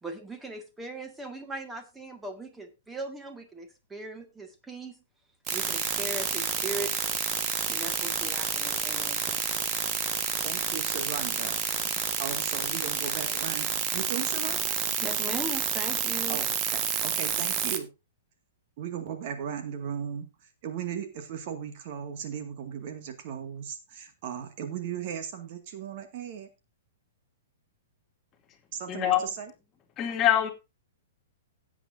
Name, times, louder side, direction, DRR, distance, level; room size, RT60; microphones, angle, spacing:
voice 1, 0.0-5.0 5.5-7.0 7.6-9.8 15.0-16.4, right 2 dB, 10° right, 7 dB, 1.9 m, -39 dB
sound 1, 5.5-17.8, right 8 dB, 25° right, 1.4 m, -29 dB
voice 2, 10.4-11.6 12.2-14.8 16.3-17.9 18.8-20.3 20.6-26.5 28.7-29.5, right 8 dB, 45° right, 7 dB, 2.0 m, -37 dB
voice 3, 28.9-29.2 30.0-30.5, left 11 dB, 25° left, 4 dB, 2.4 m, -24 dB
17.0 x 8.3 x 2.7 m, 0.25 s
figure-of-eight pair, 110°, 0 cm